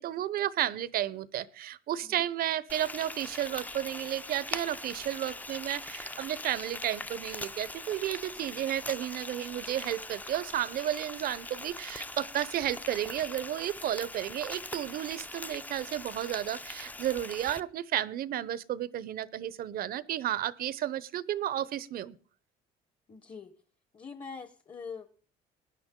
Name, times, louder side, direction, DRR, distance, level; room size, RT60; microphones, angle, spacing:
voice 1, 0.0-22.2, right 12 dB, 60° right, 19 dB, 0.8 m, -33 dB
Frying (food), 2.7-17.6, left 2 dB, 10° left, 0.6 m, -42 dB
voice 2, 23.1-23.5 23.9-25.1, left 5 dB, 30° left, 10 dB, 1.0 m, -43 dB
19.5 x 10.5 x 3.8 m, 0.41 s
cardioid pair, 110°, 17 cm